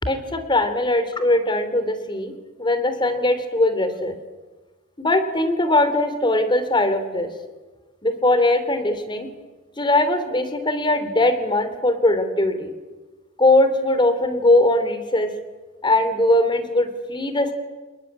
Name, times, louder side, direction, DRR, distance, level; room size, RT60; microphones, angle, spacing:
voice 1, 0.0-4.1 5.0-7.3 8.0-9.3 9.8-12.7 13.4-15.3 15.8-17.5, left 1 dB, 25° left, 10 dB, 3.3 m, -20 dB
28.0 x 21.0 x 9.7 m, 1.3 s
head